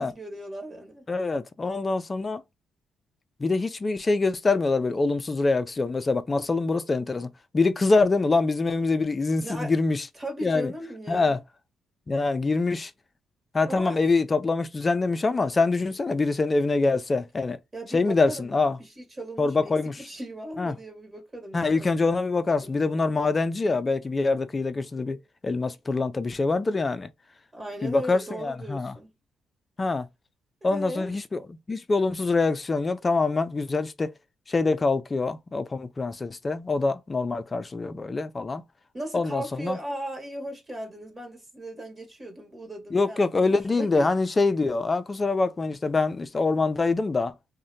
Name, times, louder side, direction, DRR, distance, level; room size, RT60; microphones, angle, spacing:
voice 1, 0.0-1.0 9.4-9.7 10.1-11.4 13.6-14.0 17.7-18.5 18.8-21.9 22.6-23.1 27.5-29.1 30.6-31.1 38.9-44.1, right 1 dB, 25° right, 1.0 m, -37 dB
voice 2, 1.1-2.4 3.4-10.1 10.4-10.7 11.1-11.4 12.1-12.9 13.5-17.6 17.9-18.8 19.4-20.0 20.6-20.7 21.5-25.2 25.4-27.1 27.8-28.9 29.8-30.1 30.6-31.4 31.7-34.1 34.5-38.6 39.1-39.8 42.9-47.3, left 3 dB, 30° left, 0.3 m, -25 dB
2.7 x 2.1 x 2.5 m
cardioid pair, 90°, 0 cm